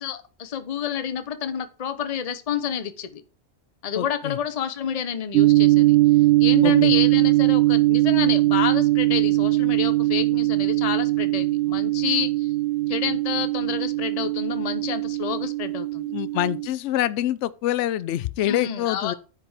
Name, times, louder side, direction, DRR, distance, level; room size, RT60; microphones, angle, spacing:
voice 1, 0.0-3.2 3.8-6.0 6.4-12.5 12.9-16.1 18.4-19.1, left 8 dB, 35° left, 0.8 m, -29 dB
voice 2, 4.0-4.4 6.6-6.9 16.1-19.1, left 13 dB, 70° left, 0.8 m, -26 dB
sound 1, 5.3-16.7, right 18 dB, 65° right, 0.8 m, -20 dB
9.9 x 5.1 x 4.9 m
omnidirectional pair, 1.4 m